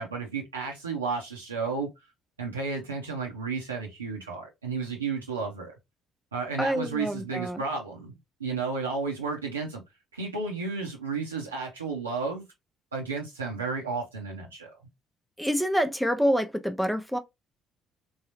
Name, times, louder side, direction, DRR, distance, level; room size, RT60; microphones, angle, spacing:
voice 1, 0.0-1.9 2.4-5.7 6.3-9.8 10.1-12.4 12.9-14.7, right 4 dB, 85° right, 0.5 m, -32 dB
voice 2, 6.6-7.6 15.4-17.2, equal, ahead, 0.4 m, -27 dB
3.6 x 2.0 x 2.9 m
figure-of-eight pair, 50°, 0 cm